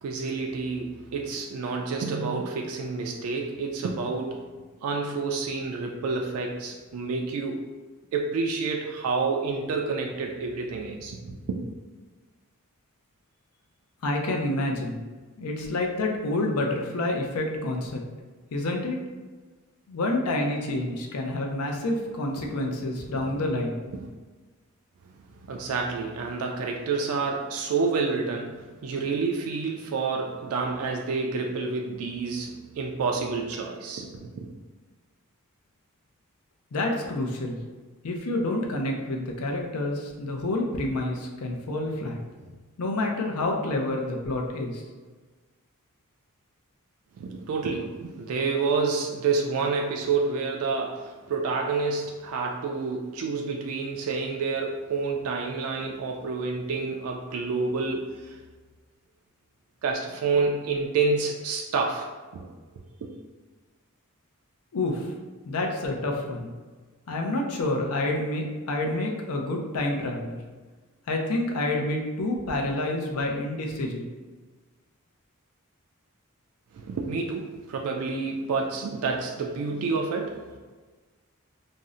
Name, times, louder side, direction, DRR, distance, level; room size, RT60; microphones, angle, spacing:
voice 1, 0.0-4.5 4.8-7.7 8.1-11.6 22.4-22.5 23.1-23.4 23.9-24.0 25.4-34.5 47.2-58.4 59.8-62.5 76.7-80.6, right 4 dB, 70° right, 1 dB, 0.3 m, -29 dB
voice 2, 14.0-15.0 15.4-18.0 18.5-19.0 19.9-23.8 36.7-37.6 38.0-42.5 42.8-44.8 64.7-65.1 65.5-66.5 67.1-70.4 71.1-74.1, left 2 dB, 80° left, 1 dB, 0.5 m, -28 dB
2.6 x 2.0 x 3.6 m, 1.4 s
head